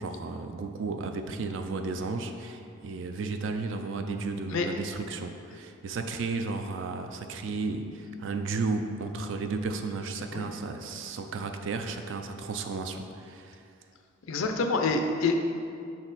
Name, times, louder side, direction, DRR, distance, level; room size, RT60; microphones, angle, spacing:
voice 1, 0.0-13.6, right 3 dB, 65° right, 6 dB, 0.4 m, -33 dB
voice 2, 14.3-15.4, left 3 dB, 80° left, 5 dB, 0.5 m, -26 dB
5.8 x 4.3 x 4.0 m, 2.5 s
head